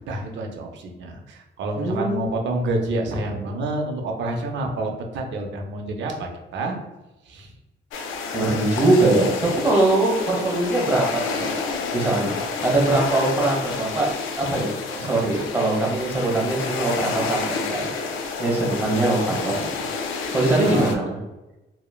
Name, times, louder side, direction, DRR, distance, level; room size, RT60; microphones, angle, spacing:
voice 1, 0.1-6.8 7.3-7.5 8.5-8.6 20.6-21.1, right 2 dB, 65° right, 2 dB, 0.5 m, -28 dB
voice 2, 1.8-2.2 8.3-11.5 11.9-12.3 12.6-14.1 14.4-17.8 18.4-19.7 20.3-21.2, right 2 dB, 10° right, -4 dB, 1.1 m, -22 dB
sound 1, 7.9-20.9, left 4 dB, 80° left, 0.4 m, -29 dB
3.0 x 2.1 x 2.2 m, 1.0 s
cardioid pair, 90°, 20 cm